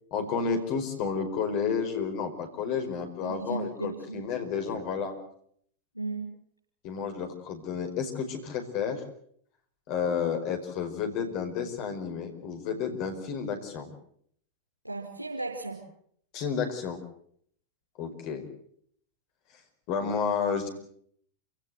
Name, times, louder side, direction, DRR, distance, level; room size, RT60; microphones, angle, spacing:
voice 1, 0.1-5.1 6.8-9.0 9.9-13.9 16.3-17.0 18.0-18.5 19.9-20.7, left 6 dB, 45° left, 5 dB, 4.9 m, -31 dB
voice 2, 3.2-4.2 5.9-6.3 14.8-15.8, right 3 dB, 85° right, -2 dB, 5.4 m, -35 dB
27.0 x 17.0 x 7.9 m, 0.67 s
figure-of-eight pair, 90°, 0 cm